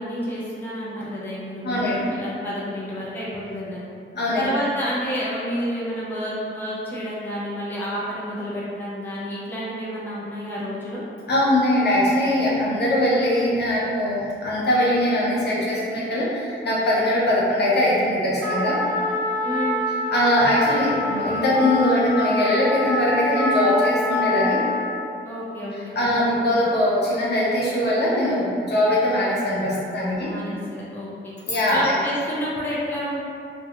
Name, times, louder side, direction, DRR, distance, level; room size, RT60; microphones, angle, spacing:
voice 1, 0.0-3.8 4.3-11.0 19.4-19.9 25.2-26.5 30.1-31.3 31.7-33.2, equal, 10° left, -8 dB, 0.5 m, -30 dB
voice 2, 1.6-2.1 4.1-4.5 11.3-18.8 20.1-24.7 26.0-30.3 31.5-31.9, left 1 dB, 55° left, -7 dB, 0.6 m, -21 dB
Trumpet, 18.4-25.0, left 1 dB, 50° right, 1.1 m, -26 dB
2.4 x 2.2 x 2.8 m, 2.5 s
wide cardioid pair, 120°, 21 cm